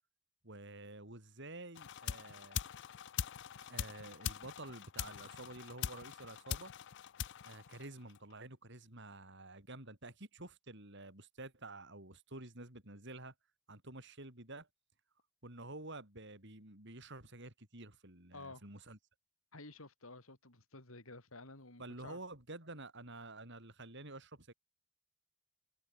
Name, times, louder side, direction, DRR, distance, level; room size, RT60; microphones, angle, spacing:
voice 1, 0.4-2.6 3.7-6.7 7.4-13.3 13.7-14.7 15.4-19.0 21.8-24.5, right 2 dB, 55° right, 6.2 m, -50 dB
sound 1, 1.7-8.3, left 9 dB, 55° left, 0.4 m, -43 dB
voice 2, 19.5-22.2, left 2 dB, 80° left, 5.1 m, -52 dB
head